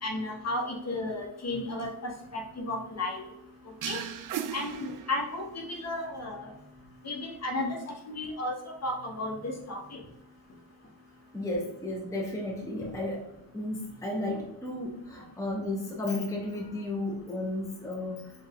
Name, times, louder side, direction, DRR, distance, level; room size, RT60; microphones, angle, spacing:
voice 1, 0.0-3.3 3.8-4.0 4.5-6.5 7.0-10.0, left 2 dB, 35° left, 0 dB, 1.1 m, -34 dB
sound 1, 3.8-5.6, right 9 dB, 45° right, 0.4 m, -36 dB
voice 2, 6.1-6.6 8.9-9.6 11.3-13.3 13.5-18.3, left 1 dB, 5° left, -2 dB, 0.8 m, -34 dB
4.4 x 2.6 x 3.5 m, 0.83 s
cardioid pair, 65°, 47 cm